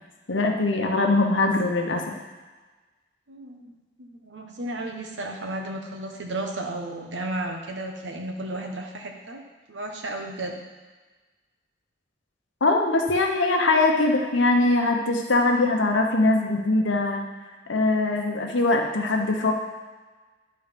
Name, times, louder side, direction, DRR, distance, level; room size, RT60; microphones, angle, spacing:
voice 1, 0.3-2.0 12.6-17.2 17.7-19.5, left 2 dB, 80° left, 2 dB, 1.1 m, -22 dB
voice 2, 3.3-3.7 4.0-9.4 9.7-10.6, right 1 dB, 75° right, 2 dB, 1.1 m, -33 dB
10.5 x 3.9 x 5.2 m, 1.3 s
head